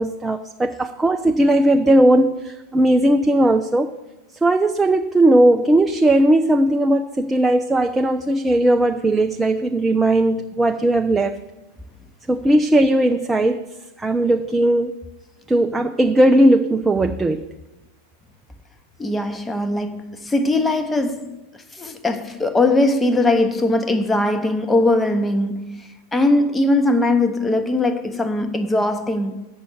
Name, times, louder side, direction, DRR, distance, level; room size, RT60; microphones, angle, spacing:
voice 1, 0.0-3.9 4.4-11.4 12.3-13.6 14.0-14.9 15.5-17.5, right 1 dB, 10° right, 0.4 m, -17 dB
voice 2, 19.0-29.5, left 2 dB, 10° left, 0.9 m, -20 dB
8.1 x 6.2 x 7.6 m
figure-of-eight pair, 90°, 0 cm